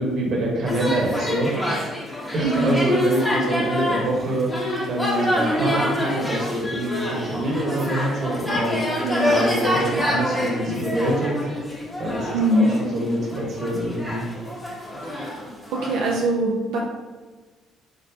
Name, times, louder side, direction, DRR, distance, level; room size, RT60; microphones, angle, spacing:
voice 1, 0.0-1.7 2.3-4.5 4.9-8.9 9.2-11.3 12.0-14.2, right 1 dB, 55° right, -1 dB, 1.2 m, -25 dB
sound 1, 0.7-16.2, equal, 15° left, 1.3 m, -26 dB
voice 2, 2.4-2.8 9.0-9.4 12.3-12.7 15.0-15.5 15.7-16.8, right 1 dB, 90° right, -3 dB, 0.5 m, -22 dB
3.7 x 3.7 x 2.7 m, 1.4 s
cardioid pair, 85°, 0 cm